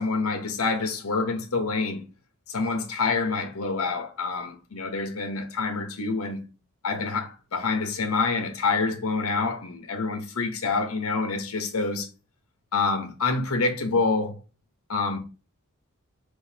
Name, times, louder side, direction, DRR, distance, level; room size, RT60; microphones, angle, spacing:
voice 1, 0.0-2.0 2.5-6.5 6.8-12.1 12.7-14.3 14.9-15.2, left 4 dB, 80° left, 1.0 m, -27 dB
6.2 x 2.7 x 2.8 m
head